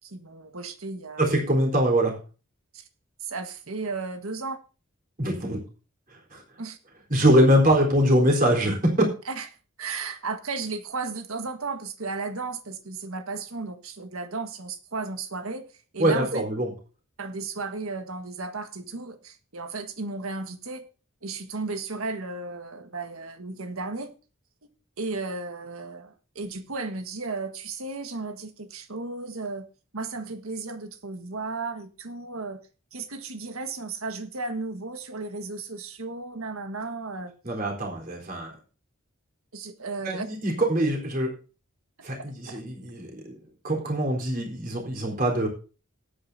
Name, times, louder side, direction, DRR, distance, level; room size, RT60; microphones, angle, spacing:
voice 1, 0.0-1.3 2.7-2.8 3.2-4.6 6.6-6.8 9.3-9.5 9.8-15.7 15.9-16.4 17.2-20.9 21.2-24.1 25.0-29.7 29.9-32.6 32.9-37.3 39.5-40.3 42.5-42.6, right 3 dB, 90° right, 8 dB, 1.6 m, -34 dB
voice 2, 1.2-2.2 5.2-5.6 6.3-6.4 7.1-8.9 16.0-16.7 37.4-38.5 40.0-41.3 42.0-43.4 43.6-45.5, equal, 40° right, 0 dB, 4.1 m, -23 dB
19.0 x 8.9 x 2.7 m, 0.35 s
head